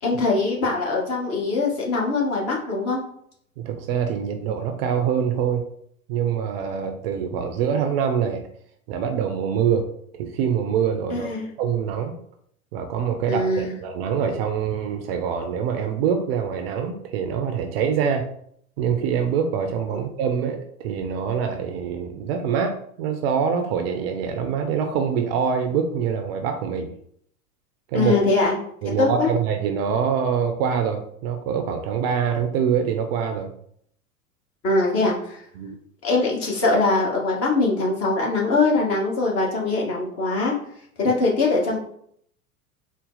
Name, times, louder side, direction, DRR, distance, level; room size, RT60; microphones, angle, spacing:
voice 1, 0.0-3.0 11.1-11.5 13.3-13.7 27.9-28.6 29.0-29.3 34.6-35.4 36.0-40.5 41.0-41.8, left 3 dB, 35° left, -3 dB, 1.5 m, -22 dB
voice 2, 3.6-5.7 6.1-8.4 8.9-9.9 10.1-11.3 11.6-12.2 12.7-18.3 18.8-26.9 27.9-28.1 28.8-33.5 35.6-35.8 41.1-41.2, right 7 dB, 45° right, 5 dB, 0.5 m, -24 dB
4.0 x 2.1 x 3.9 m, 0.66 s
figure-of-eight pair, 85°, 44 cm